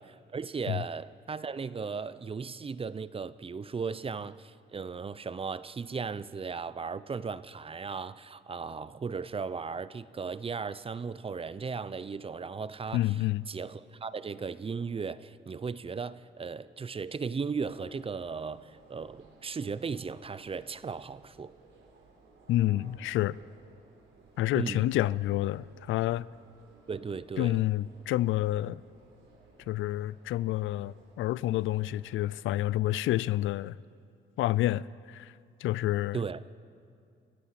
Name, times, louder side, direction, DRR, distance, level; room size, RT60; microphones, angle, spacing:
voice 1, 0.0-13.0 13.5-21.5 24.5-24.8 26.9-27.6 36.1-36.4, right 5 dB, 30° right, 0.6 m, -36 dB
voice 2, 12.9-13.4 22.5-23.4 24.4-26.3 27.4-28.8 29.7-33.8 34.4-35.3 35.6-36.2, left 15 dB, 80° left, 0.4 m, -29 dB
sound 1, 17.5-32.3, right 3 dB, 80° right, 4.1 m, -59 dB
29.5 x 15.0 x 5.9 m
cardioid pair, 90°, 20 cm